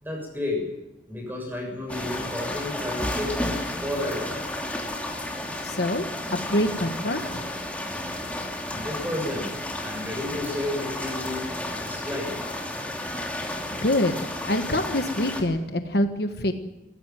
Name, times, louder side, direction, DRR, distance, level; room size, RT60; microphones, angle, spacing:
voice 1, 0.0-0.6 1.1-3.5 3.8-4.4 8.6-9.5 9.8-11.5 11.8-12.3, left 1 dB, 10° right, 2 dB, 7.2 m, -31 dB
sound 1, 1.9-15.4, left 1 dB, 10° left, 2.8 m, -32 dB
voice 2, 5.6-6.0 6.3-7.4 13.8-14.1 14.5-16.5, left 1 dB, 60° left, 6 dB, 1.5 m, -25 dB
21.5 x 16.0 x 9.3 m, 0.97 s
head